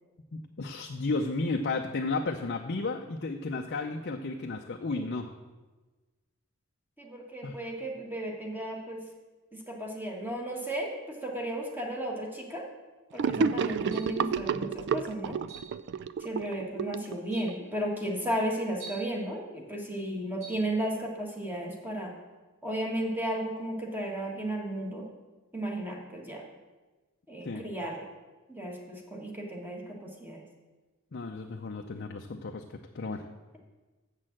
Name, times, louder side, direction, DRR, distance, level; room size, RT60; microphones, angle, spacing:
voice 1, 0.3-5.3 7.4-7.6 13.3-13.6 27.4-27.6 31.1-32.6 32.9-33.2, left 3 dB, 50° left, 3 dB, 0.6 m, -33 dB
voice 2, 7.0-9.0 9.5-12.6 13.1-15.4 16.2-22.2 22.6-25.1 25.5-26.4 27.3-28.1 28.5-30.4, right 1 dB, 10° right, 0 dB, 1.5 m, -34 dB
Gurgling / Sink (filling or washing), 13.2-17.7, right 6 dB, 55° right, 0.3 m, -30 dB
sound 1, 13.9-14.3 15.5-15.8 16.7-16.8 17.3-17.6 18.8-19.1 20.4-20.7, right 4 dB, 35° right, 1.7 m, -46 dB
7.4 x 6.5 x 7.5 m, 1.2 s
head